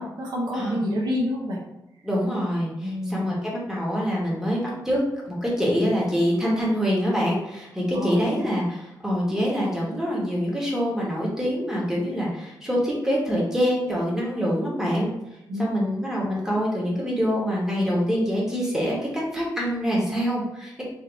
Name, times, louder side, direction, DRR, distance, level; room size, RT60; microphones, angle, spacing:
voice 1, 0.0-1.6 2.8-3.3 7.9-8.4 15.5-15.9 16.2-16.5, left 1 dB, 80° right, -4 dB, 0.8 m, -28 dB
voice 2, 2.0-5.0 5.3-15.1 15.6-20.7, equal, 5° right, -4 dB, 1.2 m, -25 dB
3.4 x 2.8 x 3.9 m, 0.89 s
wide cardioid pair, 140°, 8 cm